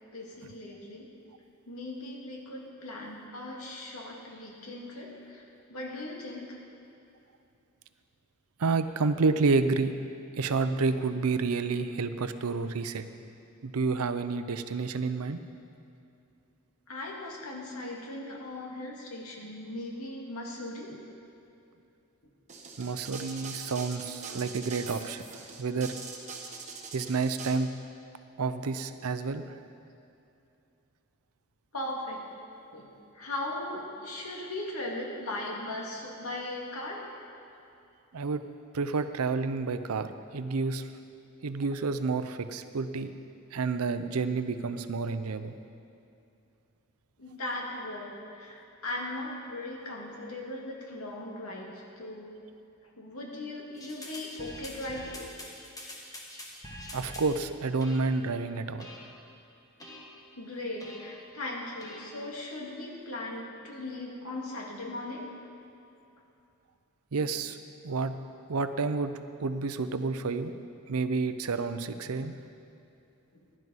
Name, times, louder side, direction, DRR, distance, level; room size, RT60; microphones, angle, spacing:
voice 1, 0.1-1.1 1.7-6.6 16.9-20.9 31.7-32.2 32.7-37.0 47.2-52.3 53.0-55.3 60.4-65.3, left 1 dB, 80° left, -2 dB, 2.2 m, -38 dB
voice 2, 8.6-10.0 10.4-13.1 13.6-15.4 22.8-25.3 25.6-25.9 26.9-27.7 28.4-29.5 38.1-38.4 38.7-40.9 41.4-43.1 43.5-45.6 56.9-58.9 67.1-67.6 67.8-68.2 68.5-70.5 70.9-72.3, right 4 dB, 90° right, 11 dB, 0.6 m, -29 dB
sound 1, 22.5-27.5, right 4 dB, 35° right, 1.3 m, -43 dB
sound 2, 53.8-57.4 57.8-58.3 58.8-59.3 59.8-60.3 60.8-61.3 61.8-62.3, left 1 dB, 15° left, 1.4 m, -46 dB
15.5 x 11.0 x 4.1 m, 2.7 s
head